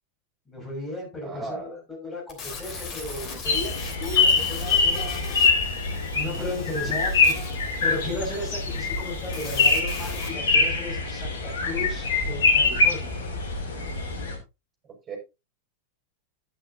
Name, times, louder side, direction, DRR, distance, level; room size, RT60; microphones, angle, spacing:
voice 1, 0.5-5.2 6.1-7.4 7.8-13.1, left 2 dB, 15° left, 0 dB, 5.9 m, -35 dB
voice 2, 1.2-1.8 14.8-15.2, right 3 dB, 25° right, 1 dB, 5.9 m, -36 dB
sound 1, 2.3-10.3, left 4 dB, 35° left, 3.0 m, -40 dB
sound 2, 3.4-14.4, left 4 dB, 60° left, 2.8 m, -24 dB
11.0 x 10.0 x 2.7 m, 0.26 s
figure-of-eight pair, 90°, 0 cm